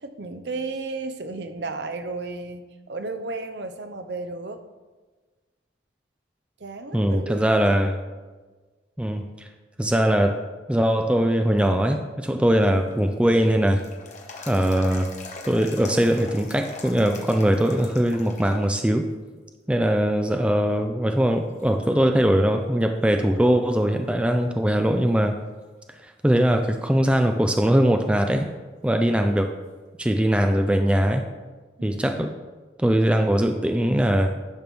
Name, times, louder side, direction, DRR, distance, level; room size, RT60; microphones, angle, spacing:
voice 1, 0.0-4.6 6.6-7.8 31.8-32.3, right 3 dB, 60° right, 8 dB, 0.7 m, -34 dB
voice 2, 6.9-8.0 9.0-9.5 9.8-10.4 10.7-13.8 14.5-15.1 15.4-19.1 19.7-25.4 26.2-28.5 28.8-29.5 30.0-31.2 31.8-32.3 32.8-34.3, equal, 5° right, 5 dB, 0.3 m, -21 dB
sound 1, 12.7-18.8 19.2-19.3 20.0-20.5 21.0-21.1 21.6-22.8 23.1-23.2 26.6-26.7 29.7-29.8, left 3 dB, 40° left, 1.0 m, -42 dB
10.5 x 3.5 x 6.0 m, 1.3 s
head